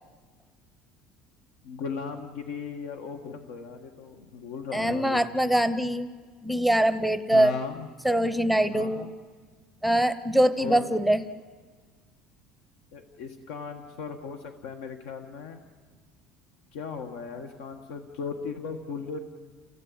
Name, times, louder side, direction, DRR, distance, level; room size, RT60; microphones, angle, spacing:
voice 1, 1.6-5.2 7.3-7.9 8.7-9.1 10.6-11.0 12.9-15.6 16.7-19.2, left 5 dB, 85° left, 6 dB, 1.6 m, -37 dB
voice 2, 4.7-6.1 6.4-7.5 8.0-9.1 9.8-11.2, right 1 dB, ahead, 12 dB, 0.6 m, -23 dB
29.0 x 16.5 x 8.7 m, 1.5 s
cardioid pair, 165°, 0 cm